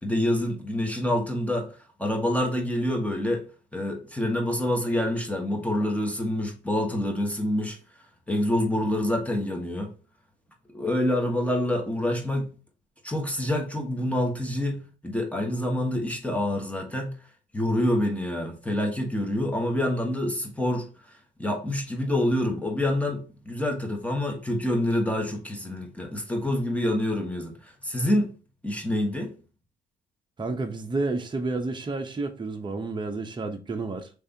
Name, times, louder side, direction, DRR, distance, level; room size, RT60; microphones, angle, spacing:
voice 1, 0.0-1.7 2.0-3.4 3.7-7.8 8.3-9.9 10.7-12.5 13.0-17.1 17.5-20.9 21.4-28.3 28.6-29.3, left 1 dB, 5° left, 1.3 m, -27 dB
voice 2, 30.4-34.1, right 3 dB, 25° right, 0.8 m, -30 dB
5.4 x 3.3 x 2.7 m
cardioid pair, 90°, 20 cm